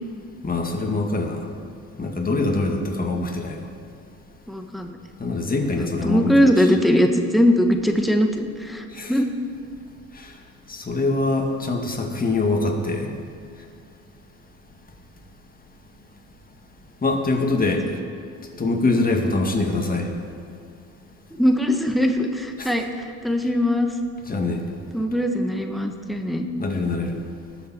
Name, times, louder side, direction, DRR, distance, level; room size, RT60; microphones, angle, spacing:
voice 1, 0.4-1.4 2.0-3.6 5.2-6.5 8.9-9.1 10.2-10.3 10.7-13.1 17.0-17.8 18.6-20.1 22.6-22.7 24.3-24.6 26.6-27.2, left 3 dB, 30° left, 2 dB, 1.9 m, -23 dB
voice 2, 4.5-4.9 5.7-9.3 21.3-23.9 24.9-26.5, equal, ahead, 4 dB, 1.1 m, -21 dB
19.5 x 6.8 x 4.3 m, 2.3 s
cardioid pair, 90°, 30 cm